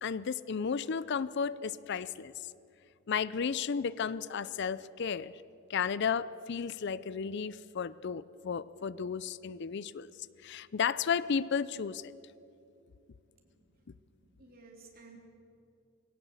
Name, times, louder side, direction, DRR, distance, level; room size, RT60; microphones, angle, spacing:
voice 1, 0.0-2.3 3.1-5.3 5.7-10.1 10.4-12.1, left 6 dB, 60° left, 18 dB, 0.5 m, -33 dB
voice 2, 13.4-15.2, right 3 dB, 45° right, 1 dB, 3.5 m, -57 dB
20.5 x 17.5 x 7.9 m, 2.7 s
head